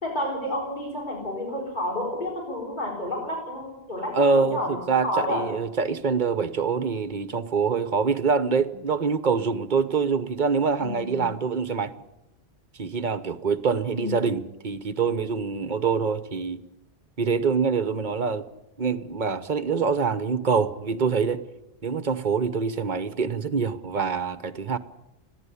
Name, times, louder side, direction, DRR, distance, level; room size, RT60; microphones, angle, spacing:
voice 1, 0.0-5.5 10.8-11.4 13.9-14.3, left 1 dB, 45° left, 4.5 m, -30 dB
voice 2, 4.1-11.9 12.8-16.6 17.2-18.5 18.8-21.4 21.8-24.8, right 5 dB, 45° right, 1.0 m, -25 dB
30.0 x 11.0 x 8.4 m
omnidirectional pair, 1.1 m